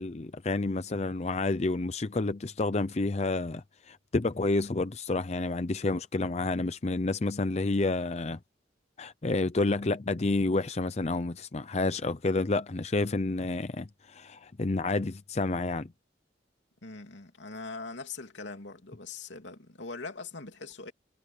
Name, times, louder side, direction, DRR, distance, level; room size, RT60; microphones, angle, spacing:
voice 1, 0.0-8.4 9.0-15.9, left 2 dB, 35° left, 0.6 m, -29 dB
voice 2, 16.8-20.9, left 3 dB, 85° left, 3.0 m, -42 dB
head